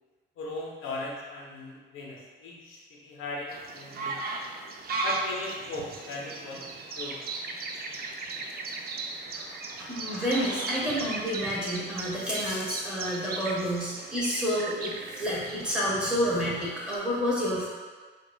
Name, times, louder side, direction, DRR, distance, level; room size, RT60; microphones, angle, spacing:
voice 1, 0.4-4.4 5.0-6.6 7.0-7.3, left 2 dB, 85° left, -3 dB, 0.7 m, -38 dB
sound 1, 3.5-17.0, right 3 dB, 50° right, 0.4 m, -37 dB
voice 2, 9.3-17.7, equal, 5° right, -7 dB, 1.2 m, -29 dB
4.9 x 2.4 x 2.2 m, 1.4 s
cardioid pair, 90°, 20 cm